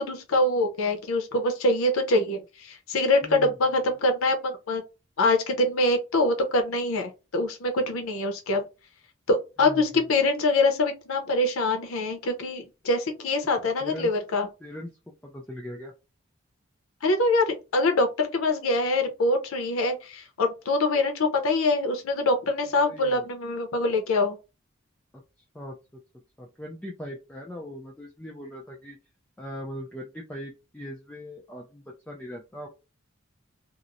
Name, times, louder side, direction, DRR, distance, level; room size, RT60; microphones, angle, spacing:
voice 1, 0.0-4.8 5.2-8.6 9.3-14.5 17.0-24.4, left 2 dB, 85° left, 0.6 m, -24 dB
voice 2, 3.2-3.6 9.6-10.0 13.8-14.1 14.6-15.9 22.8-23.3 25.1-25.2 25.5-26.0 26.4-29.0 29.4-32.7, equal, 5° left, 0.3 m, -40 dB
2.9 x 2.0 x 2.5 m
head